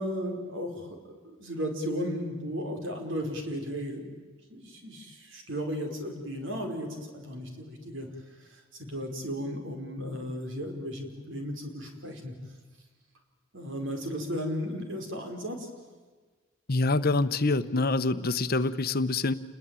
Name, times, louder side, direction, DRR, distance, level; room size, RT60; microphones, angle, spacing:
voice 1, 0.0-4.1 4.5-8.1 8.8-12.3 13.5-15.7, equal, 65° right, 4 dB, 5.0 m, -35 dB
voice 2, 16.7-19.3, left 3 dB, 50° left, 12 dB, 1.0 m, -26 dB
29.5 x 21.0 x 9.0 m, 1.4 s
head